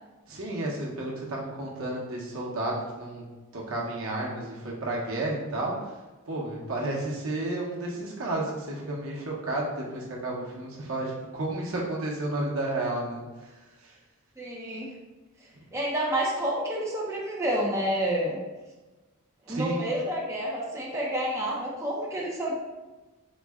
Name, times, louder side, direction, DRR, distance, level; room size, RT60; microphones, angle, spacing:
voice 1, 0.3-5.9 6.3-13.5 13.8-13.9 15.6-15.7 19.5-19.8, right 2 dB, 70° right, -3 dB, 0.8 m, -32 dB
voice 2, 14.4-14.9 15.7-18.4 19.5-22.5, right 1 dB, 15° right, -4 dB, 0.5 m, -29 dB
4.0 x 2.1 x 3.5 m, 1.2 s
head